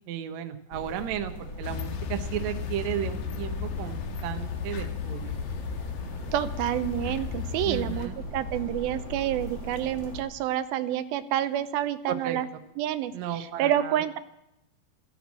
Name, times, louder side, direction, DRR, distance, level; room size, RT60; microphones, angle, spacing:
voice 1, 0.1-5.4 7.7-8.1 12.1-12.4 13.1-14.0, right 10 dB, 65° right, 6 dB, 2.0 m, -34 dB
sound 1, 0.7-10.2, left 1 dB, 35° left, 2.5 m, -39 dB
sound 2, 1.6-8.1, left 8 dB, 85° left, 3.0 m, -35 dB
voice 2, 6.3-12.5 12.8-14.2, right 11 dB, 85° right, 11 dB, 2.6 m, -28 dB
15.0 x 10.0 x 7.3 m, 0.85 s
omnidirectional pair, 4.2 m